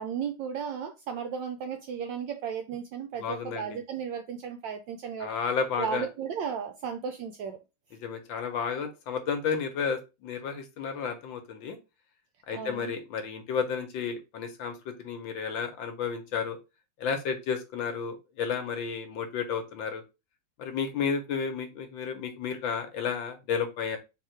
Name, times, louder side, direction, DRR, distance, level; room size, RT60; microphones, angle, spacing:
voice 1, 0.0-5.3 5.8-7.6 12.5-12.9, right 7 dB, 75° right, 6 dB, 1.0 m, -35 dB
voice 2, 3.2-3.7 5.2-6.1 8.0-11.8 12.5-16.6 17.0-20.0 20.6-24.0, left 6 dB, 70° left, 6 dB, 1.3 m, -32 dB
3.9 x 2.8 x 4.3 m, 0.27 s
omnidirectional pair, 2.4 m